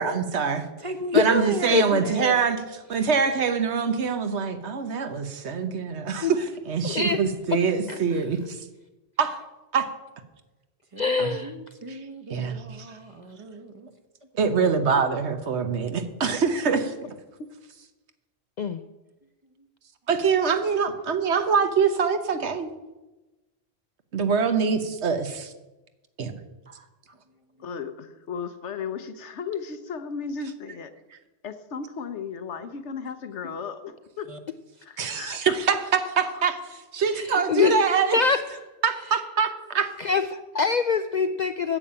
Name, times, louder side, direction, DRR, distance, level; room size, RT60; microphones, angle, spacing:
voice 1, 0.0-0.7 1.1-2.6 2.9-8.6 9.2-9.4 9.7-9.9 11.2-11.3 11.9-12.0 12.3-12.9 14.3-16.9 20.1-22.7 24.1-25.5 26.2-26.3 35.0-38.2 38.8-39.9, right 6 dB, 75° right, 9 dB, 1.3 m, -24 dB
voice 2, 0.8-1.8 10.9-13.9 26.7-26.8 34.3-34.4, right 1 dB, 30° right, 6 dB, 1.1 m, -34 dB
voice 3, 1.7-2.4 6.8-7.0 27.6-30.9 31.4-34.3 34.8-35.6, left 6 dB, 80° left, 10 dB, 1.2 m, -35 dB
voice 4, 11.0-11.5 18.6-18.8 37.2-38.6 40.0-41.8, left 5 dB, 55° left, 10 dB, 0.5 m, -24 dB
9.8 x 7.2 x 8.7 m, 1.1 s
omnidirectional pair, 1.2 m